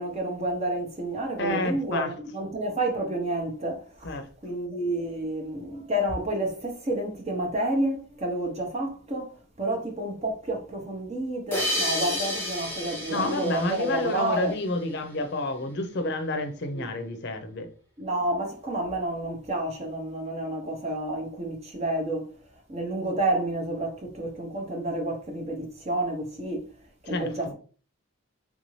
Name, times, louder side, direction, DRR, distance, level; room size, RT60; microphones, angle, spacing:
voice 1, 0.0-4.1 4.4-14.5 16.8-16.9 18.0-22.3 22.7-26.7 27.1-27.5, right 1 dB, 30° right, 0.7 m, -30 dB
voice 2, 1.4-2.1 4.0-4.3 13.1-17.7 27.0-27.3, left 2 dB, 50° left, 0.6 m, -29 dB
sound 1, 11.5-14.8, left 1 dB, 10° left, 0.8 m, -31 dB
3.6 x 2.6 x 3.1 m
head